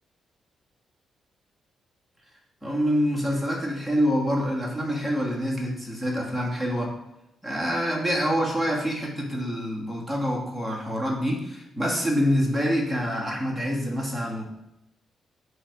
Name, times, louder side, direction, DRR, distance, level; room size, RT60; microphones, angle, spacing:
voice 1, 2.6-7.0 7.4-14.4, equal, 5° left, -3 dB, 2.0 m, -26 dB
10.5 x 3.4 x 4.7 m, 0.88 s
cardioid pair, 130°, 0 cm